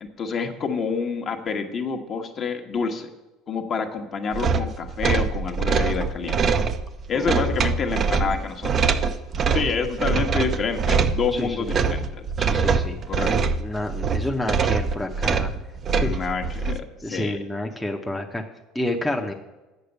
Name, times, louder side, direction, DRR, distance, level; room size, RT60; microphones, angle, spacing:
voice 1, 0.0-3.1 3.5-6.4 7.1-8.9 9.5-12.2 13.1-13.5 15.9-17.4, left 5 dB, 40° left, 5 dB, 1.2 m, -28 dB
sound 1, 4.3-16.8, right 5 dB, 35° right, 0.5 m, -24 dB
voice 2, 7.1-7.5 11.3-11.8 12.4-15.5 15.9-16.2 17.0-18.4 18.7-19.3, left 1 dB, 5° left, 0 dB, 0.8 m, -29 dB
7.8 x 6.6 x 8.0 m, 1.1 s
supercardioid pair, 115°, 0 cm